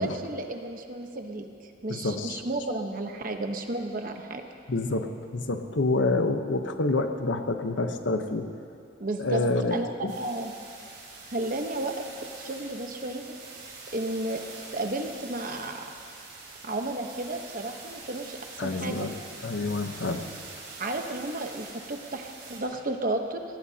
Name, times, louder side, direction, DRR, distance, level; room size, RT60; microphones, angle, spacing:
voice 1, 0.0-1.5 1.8-4.4 9.0-9.4 9.7-10.5 11.3-12.1 12.4-13.4 13.9-14.4 14.7-15.8 16.6-19.1 20.8-23.4, right 2 dB, 50° right, 5 dB, 1.1 m, -32 dB
voice 2, 1.9-2.4 4.7-8.5 9.2-10.1 18.6-19.1 19.4-20.3, left 2 dB, 90° left, 7 dB, 1.0 m, -28 dB
sound 1, 10.1-22.6, right 3 dB, 65° right, 4.6 m, -45 dB
23.5 x 18.0 x 2.9 m, 2.4 s
head